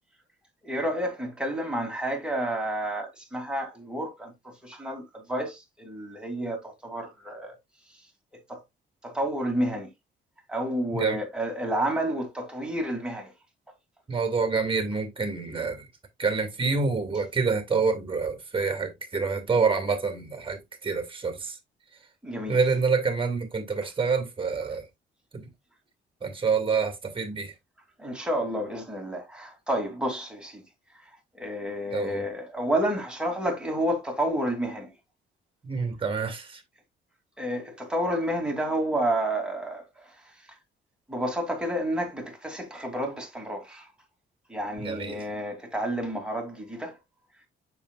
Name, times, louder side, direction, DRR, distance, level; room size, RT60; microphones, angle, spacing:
voice 1, 0.6-7.5 8.3-8.6 9.0-9.9 10.5-13.3 22.2-22.6 28.0-30.6 31.3-34.9 37.4-40.1 41.1-43.9 44.5-47.0, right 1 dB, 5° right, 2.8 m, -30 dB
voice 2, 14.1-15.9 16.2-21.6 22.5-24.8 25.3-25.5 26.2-27.5 31.9-32.2 35.6-36.6 44.8-45.2, right 4 dB, 25° right, 2.2 m, -27 dB
7.0 x 6.2 x 2.4 m
cardioid pair, 90°, 20 cm